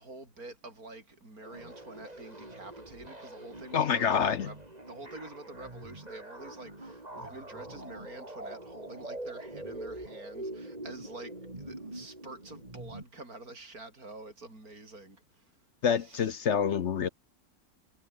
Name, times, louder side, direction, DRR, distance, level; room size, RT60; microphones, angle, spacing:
voice 1, 0.0-4.6 4.9-15.5 15.9-16.3, right 2 dB, 50° right, 7.3 m, -48 dB
sound 1, 1.4-13.0, right 1 dB, 20° right, 4.6 m, -44 dB
voice 2, 3.7-4.5 15.8-17.1, left 7 dB, 55° left, 0.8 m, -27 dB
omnidirectional pair, 2.0 m